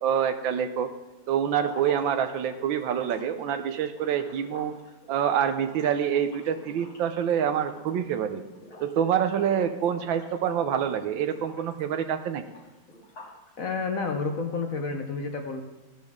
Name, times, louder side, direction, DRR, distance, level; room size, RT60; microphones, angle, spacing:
voice 1, 0.0-0.9 1.3-4.7 5.1-8.4 8.8-12.4, right 8 dB, 75° right, 9 dB, 1.5 m, -26 dB
sound 1, 1.5-8.2 8.5-9.0 9.3-11.0 11.3-13.5, left 2 dB, 70° left, 3.4 m, -47 dB
voice 2, 13.6-15.6, left 4 dB, 55° left, 4 dB, 1.1 m, -30 dB
14.0 x 10.5 x 3.6 m, 1.1 s
omnidirectional pair, 2.2 m